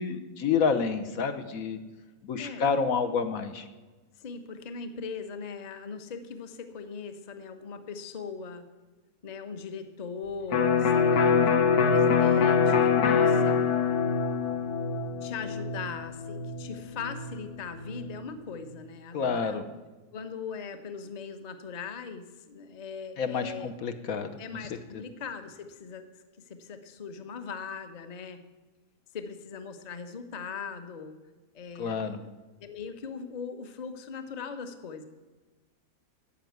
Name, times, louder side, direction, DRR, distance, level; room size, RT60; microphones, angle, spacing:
voice 1, 0.0-1.8 2.2-3.7 19.1-19.6 23.2-24.3 24.9-25.0 31.8-32.2, left 5 dB, 70° left, 8 dB, 1.3 m, -29 dB
voice 2, 2.4-2.7 4.2-8.7 9.2-13.6 15.2-19.6 20.1-23.7 24.4-26.1 26.5-28.4 29.1-31.2 31.5-32.2 32.6-35.0, left 5 dB, 35° left, 9 dB, 0.8 m, -40 dB
Electric guitar, 10.5-18.2, left 6 dB, 85° left, 1.4 m, -24 dB
10.0 x 7.3 x 9.3 m, 1.3 s
omnidirectional pair, 1.6 m